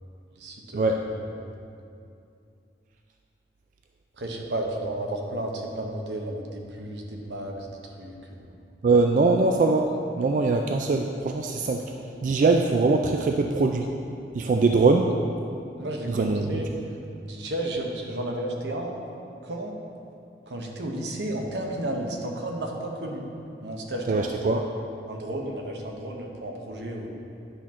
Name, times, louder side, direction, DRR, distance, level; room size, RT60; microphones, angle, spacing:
voice 1, 0.4-0.8 1.1-1.3 4.2-8.6 15.8-16.7 17.2-19.0 19.4-19.7 20.5-23.3 23.6-24.3 25.1-27.1, right 1 dB, 80° right, 1 dB, 1.0 m, -33 dB
voice 2, 8.8-11.8 12.2-13.9 14.3-15.1 16.1-16.6 24.1-24.6, right 3 dB, 45° right, 3 dB, 0.3 m, -22 dB
9.9 x 5.8 x 3.7 m, 2.5 s
head